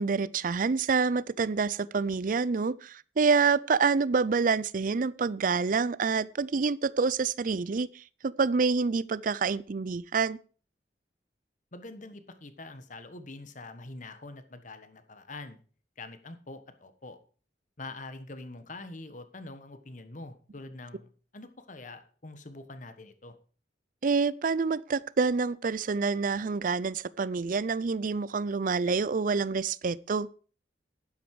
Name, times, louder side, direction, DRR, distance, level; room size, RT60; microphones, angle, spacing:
voice 1, 0.0-10.4 24.0-30.3, right 4 dB, 50° right, 0.5 m, -27 dB
voice 2, 11.7-15.6 16.0-17.2 17.8-23.3, left 2 dB, 45° left, 1.3 m, -45 dB
11.0 x 10.5 x 4.8 m
head